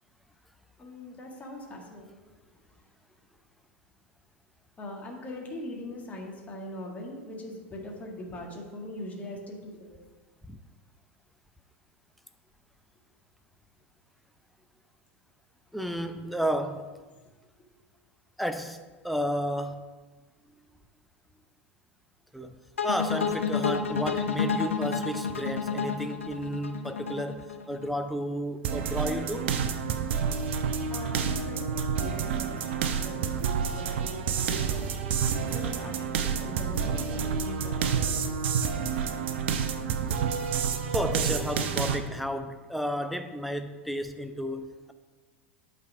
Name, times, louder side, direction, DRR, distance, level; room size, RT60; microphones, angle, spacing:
voice 1, 0.8-2.2 4.8-10.0 16.0-16.2 17.2-17.3 30.9-34.9 35.4-38.5, left 1 dB, 20° left, 0 dB, 1.7 m, -41 dB
voice 2, 15.7-16.9 18.4-18.8 19.0-19.8 22.3-22.5 22.8-29.5 40.9-44.9, equal, ahead, 7 dB, 0.6 m, -32 dB
sound 1, 22.8-27.9, left 6 dB, 75° left, 0.7 m, -30 dB
sound 2, 28.6-42.0, right 6 dB, 60° right, 0.6 m, -29 dB
8.2 x 4.3 x 5.9 m, 1.3 s
figure-of-eight pair, 85°, 7 cm